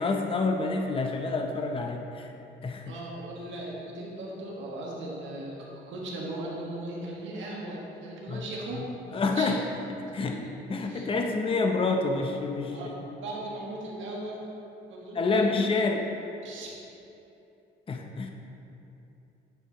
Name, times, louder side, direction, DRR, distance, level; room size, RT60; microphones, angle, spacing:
voice 1, 0.0-2.3 2.6-2.9 8.3-8.5 9.1-9.6 10.1-10.3 10.7-12.8 15.2-16.1 17.9-18.3, left 3 dB, 30° left, 3 dB, 0.6 m, -27 dB
voice 2, 2.8-5.5 5.9-8.8 9.1-9.6 10.2-10.4 10.8-11.1 12.7-12.9 13.2-14.4 14.9-15.6 16.4-16.7, right 2 dB, 80° right, -3 dB, 1.6 m, -38 dB
9.3 x 7.2 x 3.0 m, 2.9 s
cardioid pair, 85°, 19 cm